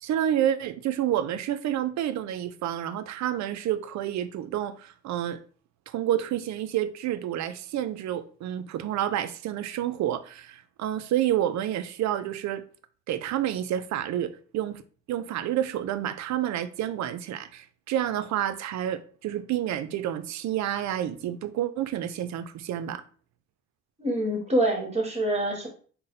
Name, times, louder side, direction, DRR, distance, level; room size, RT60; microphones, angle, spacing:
voice 1, 0.0-5.4 5.9-12.6 13.1-14.8 15.1-23.0, right 11 dB, 65° right, 0.4 m, -29 dB
voice 2, 24.0-25.7, right 1 dB, 20° right, 1.4 m, -26 dB
3.9 x 2.1 x 4.0 m
cardioid pair, 90°, 30 cm